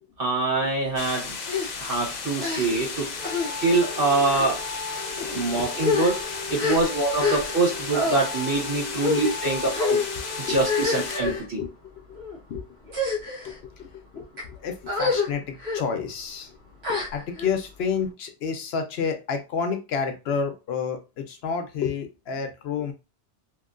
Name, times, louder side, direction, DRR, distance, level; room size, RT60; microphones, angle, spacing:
voice 1, 0.2-1.3 1.8-3.2 3.6-4.6 5.3-6.2 6.5-10.0 10.4-11.6, right 3 dB, 55° right, -2 dB, 1.6 m, -24 dB
sound 1, 1.0-11.2, left 5 dB, 55° left, 0.5 m, -35 dB
sound 2, 1.5-1.7 2.4-2.9 3.2-3.5 4.2-4.5 5.2-5.3 5.7-7.7 7.9-8.2 9.0-9.3 9.7-10.1 10.6-11.4 12.1-12.4 12.9-13.6 14.2-14.4 14.9-15.3 15.6-15.8 16.8-17.5, left 4 dB, 80° right, 1.4 m, -27 dB
sound 3, 3.2-11.4, left 3 dB, 15° right, 1.3 m, -36 dB
voice 2, 5.2-5.6 10.4-10.6 11.6-11.7 12.5-12.6 13.4-13.9 14.1-16.5 16.9-22.9, left 6 dB, 75° left, 6 dB, 0.8 m, -30 dB
3.0 x 2.7 x 2.4 m, 0.28 s
omnidirectional pair, 1.1 m